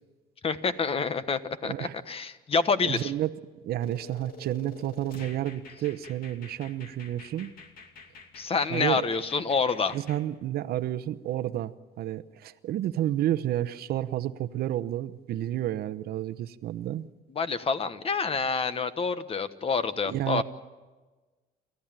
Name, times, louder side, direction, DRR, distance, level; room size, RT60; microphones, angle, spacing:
voice 1, 0.4-3.1 8.3-10.0 17.3-20.4, left 5 dB, 35° left, 12 dB, 1.2 m, -27 dB
voice 2, 1.6-2.0 2.8-3.3 3.6-7.5 8.7-9.1 9.9-17.0 20.1-20.4, right 13 dB, 65° right, 13 dB, 0.9 m, -30 dB
sound 1, 3.8-10.2, left 4 dB, 60° left, 2.9 m, -48 dB
29.0 x 14.0 x 9.0 m, 1.3 s
cardioid pair, 110°, 17 cm